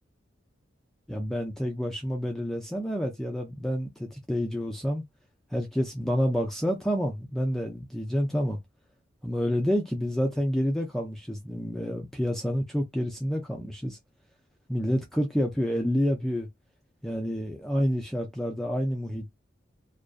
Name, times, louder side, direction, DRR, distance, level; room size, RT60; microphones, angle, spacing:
voice 1, 1.1-5.0 5.5-8.6 9.2-14.0 14.7-16.5 17.0-19.4, equal, ahead, 0.3 m, -28 dB
2.4 x 2.2 x 2.3 m
head